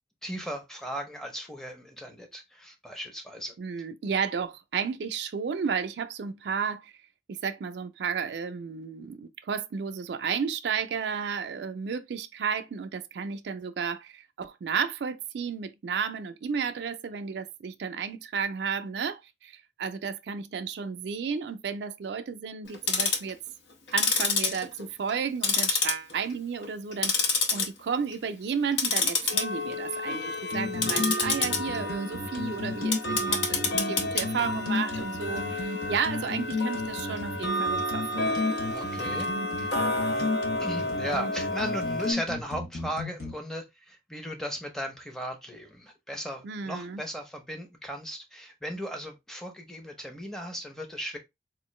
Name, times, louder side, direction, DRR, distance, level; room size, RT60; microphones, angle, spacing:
voice 1, 0.2-3.5 30.8-31.5 38.7-39.3 39.6-39.7 40.1-40.3 40.6-51.2, equal, 5° left, 0.6 m, -37 dB
voice 2, 3.6-6.9 7.3-23.4 23.9-38.6 46.4-47.0, right 6 dB, 75° right, 0.4 m, -33 dB
Tick-tock, 22.7-23.3 23.9-25.2 25.4-26.3 26.6-27.7 28.0-28.3 28.7-42.1, left 3 dB, 90° left, 0.8 m, -29 dB
sound 1, 30.5-43.3, left 3 dB, 50° left, 0.8 m, -33 dB
3.7 x 2.4 x 3.1 m
head